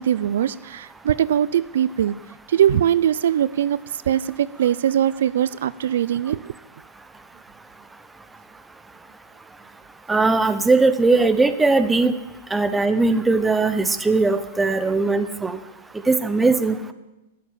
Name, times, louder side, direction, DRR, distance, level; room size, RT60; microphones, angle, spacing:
voice 1, 0.0-2.2 2.5-6.5, right 10 dB, 75° right, 19 dB, 0.4 m, -21 dB
voice 2, 10.1-12.1 12.5-15.6 16.1-16.9, right 3 dB, 10° right, 11 dB, 0.9 m, -19 dB
12.5 x 7.4 x 8.8 m, 1.0 s
hypercardioid pair, 130°, 0 cm